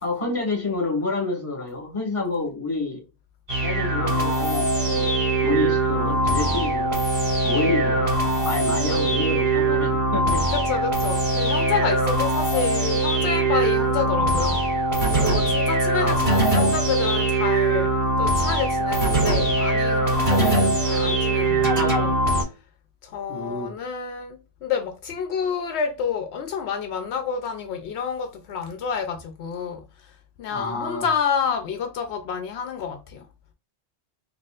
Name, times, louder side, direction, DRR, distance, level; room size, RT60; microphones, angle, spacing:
voice 1, 0.0-3.0 3.6-5.1 5.4-7.0 7.4-8.2 8.4-10.4 16.0-16.2 16.6-16.8 20.4-20.6 23.3-23.7 30.5-31.1, left 3 dB, 30° left, 1.6 m, -28 dB
sound 1, 3.5-22.4, right 2 dB, 35° right, 2.4 m, -22 dB
voice 2, 10.5-14.6 15.2-22.4 23.0-33.3, left 6 dB, 80° left, 0.8 m, -29 dB
4.1 x 2.9 x 2.4 m
omnidirectional pair, 1.1 m